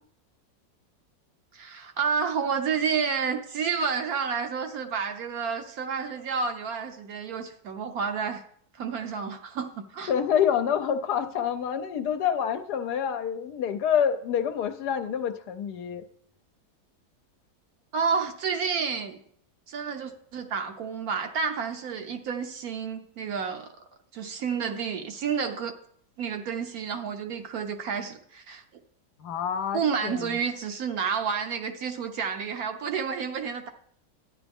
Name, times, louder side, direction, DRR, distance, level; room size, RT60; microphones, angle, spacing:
voice 1, 1.5-8.4 8.7-10.1 17.9-19.2 19.7-23.8 24.1-25.8 26.2-28.6 29.7-33.7, right 6 dB, 65° right, 6 dB, 1.1 m, -30 dB
voice 2, 10.1-16.0 29.2-30.4, left 8 dB, 70° left, 8 dB, 1.1 m, -27 dB
11.5 x 9.8 x 3.5 m, 0.66 s
omnidirectional pair, 1.9 m